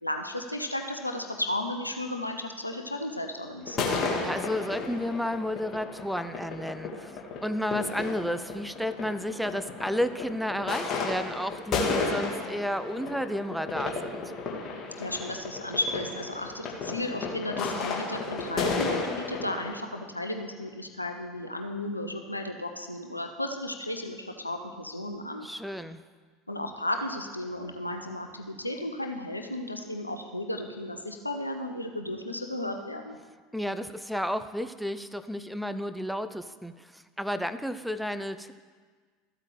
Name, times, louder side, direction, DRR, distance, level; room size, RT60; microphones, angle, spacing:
voice 1, 0.0-3.9 15.0-25.5 26.5-33.2, left 1 dB, 85° left, 4 dB, 0.7 m, -34 dB
sound 1, 3.7-19.7, left 3 dB, 35° left, 1.9 m, -33 dB
voice 2, 4.2-14.2 25.4-26.0 33.5-38.5, equal, ahead, 11 dB, 0.5 m, -32 dB
14.0 x 8.2 x 3.3 m, 1.5 s
figure-of-eight pair, 70°, 0 cm